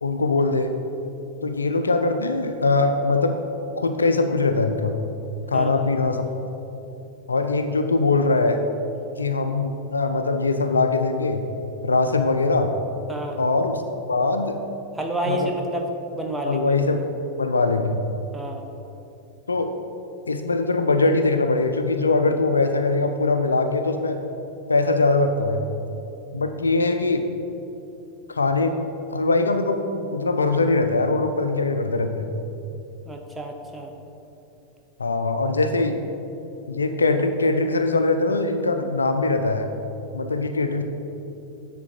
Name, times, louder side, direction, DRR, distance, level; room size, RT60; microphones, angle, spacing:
voice 1, 0.0-0.7 1.4-3.4 3.8-5.0 5.5-6.3 7.3-8.6 9.2-11.4 11.8-12.7 13.4-13.8 14.1-14.6 15.2-15.4 16.4-17.0 17.4-18.0 19.5-19.7 20.3-24.2 24.7-25.6 26.3-27.2 28.3-28.7 29.1-32.3 35.0-36.0 36.7-39.7 40.1-40.8, left 3 dB, 75° left, 7 dB, 0.4 m, -22 dB
voice 2, 14.9-15.9 16.1-16.6 18.3-18.6 33.1-33.9, right 1 dB, 10° right, 2 dB, 0.8 m, -29 dB
9.7 x 3.8 x 4.4 m, 2.9 s
figure-of-eight pair, 90°, 0 cm